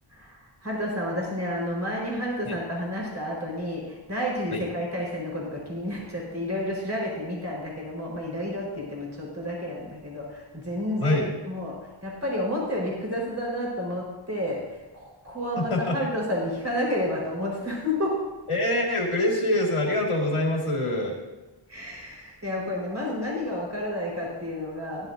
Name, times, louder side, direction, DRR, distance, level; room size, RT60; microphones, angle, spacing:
voice 1, 0.1-18.2 21.7-25.1, left 1 dB, 35° right, -3 dB, 4.5 m, -31 dB
voice 2, 15.6-16.0 18.5-21.1, left 1 dB, 85° left, -2 dB, 2.7 m, -25 dB
16.5 x 11.0 x 2.7 m, 1.1 s
wide cardioid pair, 55°, 49 cm